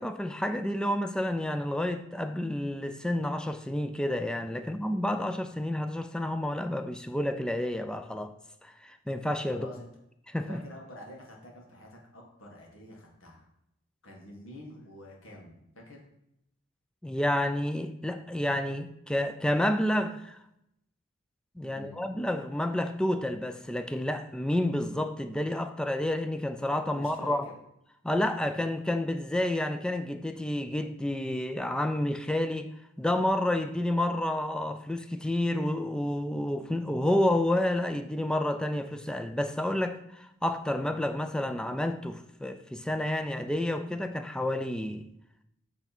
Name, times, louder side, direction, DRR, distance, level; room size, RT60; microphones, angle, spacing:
voice 1, 0.0-8.3 8.6-9.7 10.3-10.6 17.0-20.4 21.6-27.5 28.0-45.1, left 1 dB, 5° left, 8 dB, 0.3 m, -30 dB
voice 2, 9.5-9.9 10.5-13.4 14.0-16.0 21.6-22.0 26.9-27.5, equal, 85° left, -1 dB, 1.7 m, -48 dB
8.1 x 3.4 x 4.2 m, 0.79 s
head